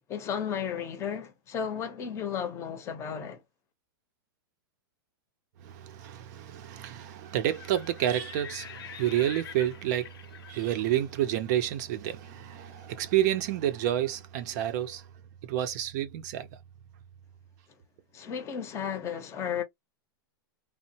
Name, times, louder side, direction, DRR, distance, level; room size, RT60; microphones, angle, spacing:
voice 1, 0.1-3.4 18.1-19.6, left 8 dB, 20° left, 0.7 m, -34 dB
voice 2, 5.6-15.0 15.4-16.5, right 12 dB, 50° right, 0.5 m, -29 dB
Livestock farm animals working animals, 7.3-13.2, left 8 dB, 85° left, 0.8 m, -47 dB
3.0 x 2.1 x 2.7 m
supercardioid pair, 150°, 12 cm